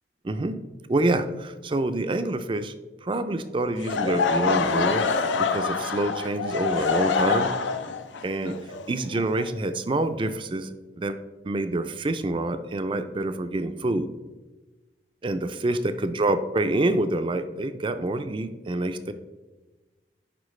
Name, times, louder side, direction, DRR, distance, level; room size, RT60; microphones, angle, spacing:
voice 1, 0.2-0.6 0.9-2.7 3.0-7.5 8.2-8.6 8.9-10.7 11.0-11.2 11.4-14.1 15.2-19.1, right 2 dB, 30° right, 10 dB, 0.4 m, -27 dB
Laughter / Crowd, 3.8-9.7, left 5 dB, 85° left, 0.6 m, -25 dB
11.0 x 4.4 x 3.2 m, 1.2 s
head